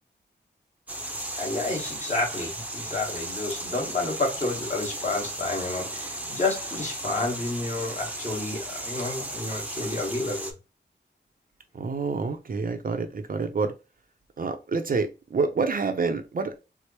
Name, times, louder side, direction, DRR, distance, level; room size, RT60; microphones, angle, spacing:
sound 1, 0.9-10.5, right 1 dB, 10° right, 0.6 m, -35 dB
voice 1, 1.4-10.5, left 2 dB, 40° left, 1.4 m, -30 dB
voice 2, 11.7-13.7 14.4-16.6, right 4 dB, 50° right, 0.5 m, -27 dB
4.5 x 2.0 x 2.8 m
wide cardioid pair, 105°, 19 cm